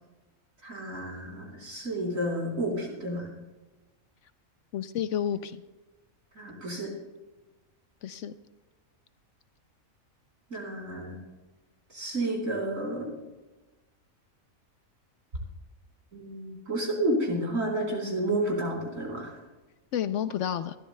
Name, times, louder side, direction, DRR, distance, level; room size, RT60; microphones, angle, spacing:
voice 1, 0.6-3.3 6.4-6.9 10.5-11.2 11.9-13.1 16.1-19.3, right 1 dB, 70° right, -2 dB, 4.1 m, -31 dB
voice 2, 4.7-5.6 8.0-8.3 19.9-20.8, left 9 dB, 70° left, 12 dB, 0.8 m, -30 dB
21.0 x 13.0 x 2.2 m, 1.2 s
omnidirectional pair, 1.4 m